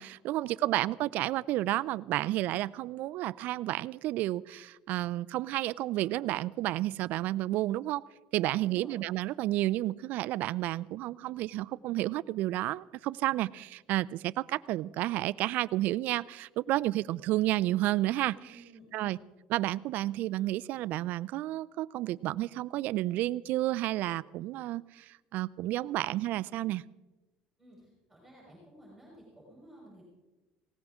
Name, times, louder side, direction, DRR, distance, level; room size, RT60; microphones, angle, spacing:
voice 1, 0.0-8.0 8.3-18.4 18.9-19.2 19.5-26.8, right 16 dB, 60° right, 18 dB, 0.4 m, -31 dB
voice 2, 8.6-9.0 18.3-19.3 27.6-30.0, right 1 dB, ahead, -5 dB, 5.9 m, -54 dB
20.0 x 17.5 x 3.6 m, 1.1 s
cardioid pair, 135°, 3 cm